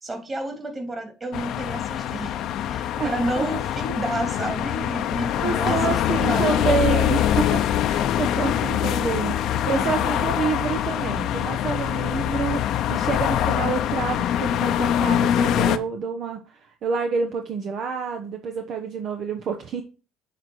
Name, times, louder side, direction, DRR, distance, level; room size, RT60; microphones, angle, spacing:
voice 1, 0.0-2.4 2.7-7.2 9.6-10.2, right 1 dB, 25° right, 4 dB, 3.0 m, -31 dB
sound 1, 1.3-15.8, left 10 dB, 65° left, 0.7 m, -24 dB
voice 2, 3.0-3.5 5.4-7.6 7.9-19.8, right 5 dB, 55° right, 5 dB, 1.0 m, -28 dB
7.2 x 4.3 x 6.3 m, 0.35 s
supercardioid pair, 80°, 0 cm